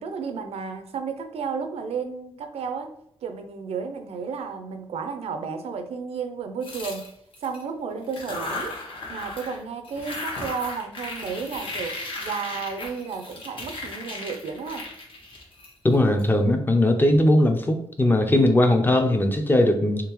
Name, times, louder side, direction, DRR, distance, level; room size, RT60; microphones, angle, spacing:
voice 1, 0.0-2.9 3.2-7.1 7.4-8.8 9.1-14.9, right 5 dB, 90° right, 7 dB, 0.5 m, -32 dB
sound 1, 6.6-7.6 8.0-9.6 9.8-16.2, left 2 dB, 60° left, 1.1 m, -36 dB
voice 2, 15.8-20.1, left 1 dB, 20° left, 5 dB, 0.5 m, -19 dB
3.6 x 3.2 x 3.0 m, 0.71 s
wide cardioid pair, 115°, 10 cm